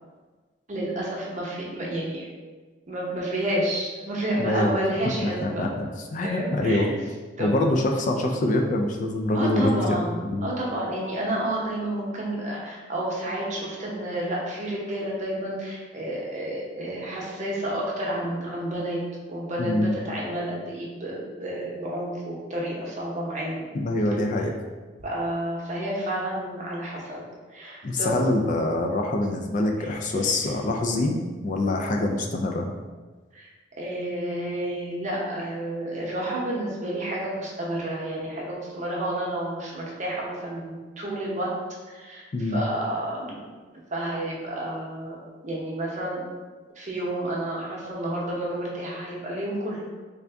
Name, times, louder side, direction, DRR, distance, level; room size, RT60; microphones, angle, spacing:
voice 1, 0.7-2.3 2.9-5.6 6.2-7.0 7.4-7.5 9.3-19.0 19.3-23.7 25.0-27.2 27.5-28.2 29.8-30.3 33.3-33.5 33.8-41.5 41.9-43.5 43.9-46.3 46.8-49.8, right 1 dB, 40° right, -3 dB, 0.8 m, -30 dB
voice 2, 4.4-4.7 5.4-6.9 7.4-9.8 10.2-10.5 19.6-20.0 23.7-24.5 27.8-32.7 42.3-42.6, left 1 dB, 40° left, 2 dB, 0.3 m, -25 dB
3.4 x 2.5 x 3.4 m, 1.4 s
head